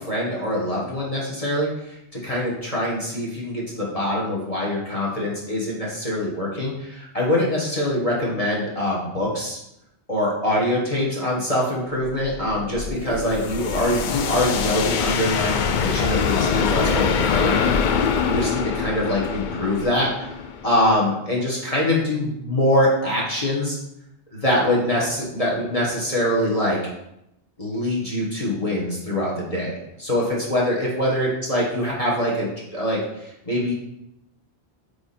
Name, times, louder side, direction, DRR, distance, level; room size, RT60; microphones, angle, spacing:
voice 1, 0.0-9.6 10.1-17.7 18.2-20.4 20.6-23.8 24.3-26.8 27.6-33.7, left 1 dB, 30° left, -4 dB, 1.6 m, -24 dB
sound 1, 12.0-21.0, left 6 dB, 55° left, 0.6 m, -24 dB
9.5 x 3.4 x 4.2 m, 0.83 s
omnidirectional pair, 1.2 m